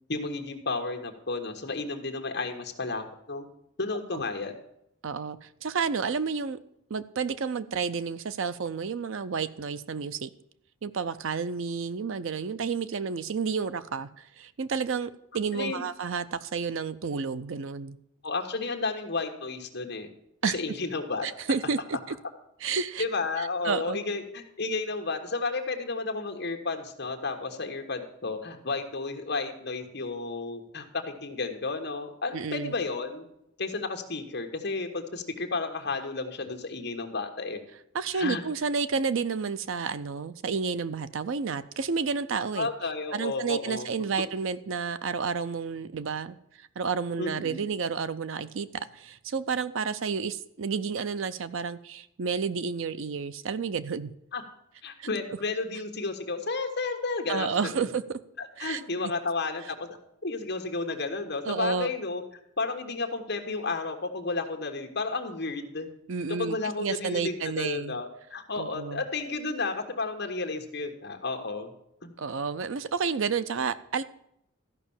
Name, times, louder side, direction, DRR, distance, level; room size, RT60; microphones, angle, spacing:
voice 1, 0.1-3.5 3.8-4.5 15.5-15.8 18.2-20.1 20.4-21.3 23.0-33.2 33.6-37.6 38.1-38.4 42.5-43.9 47.2-47.6 54.3-54.4 54.8-57.5 57.8-57.9 58.4-59.9 60.2-62.2 62.6-65.9 66.4-71.7 72.0-72.1, left 3 dB, 50° left, 4 dB, 1.3 m, -32 dB
voice 2, 5.0-6.6 6.9-10.3 10.8-14.1 14.4-18.0 20.4-20.6 21.2-22.0 22.6-23.0 23.4-24.0 32.3-32.7 37.9-42.7 43.1-54.1 55.0-55.1 57.3-58.2 58.6-59.1 61.5-61.9 66.1-68.0 68.6-69.0 72.2-74.0, right 5 dB, 65° right, 14 dB, 0.5 m, -31 dB
13.5 x 5.5 x 7.1 m, 0.77 s
head